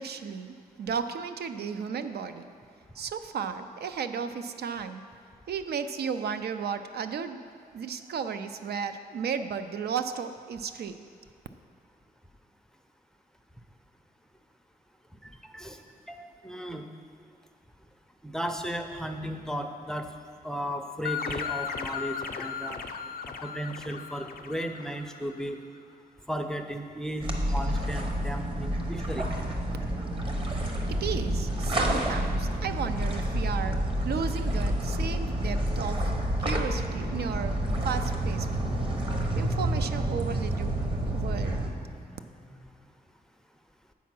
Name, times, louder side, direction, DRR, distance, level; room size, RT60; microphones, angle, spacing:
voice 1, 0.0-2.5 3.0-5.0 5.5-7.4 7.7-11.0 30.9-36.1 36.4-38.5 39.4-41.6, right 6 dB, 85° right, 9 dB, 0.4 m, -34 dB
voice 2, 16.1-16.8 18.2-20.1 20.4-22.8 23.4-25.6 26.3-29.3, equal, 5° left, 5 dB, 0.4 m, -35 dB
sound 1, 21.0-25.4, left 7 dB, 65° left, 0.5 m, -36 dB
sound 2, 27.2-41.7, right 1 dB, 35° right, 0.8 m, -29 dB
sound 3, 37.4-42.8, right 1 dB, 55° right, 2.1 m, -46 dB
8.3 x 4.6 x 5.9 m, 2.2 s
wide cardioid pair, 135°, 16 cm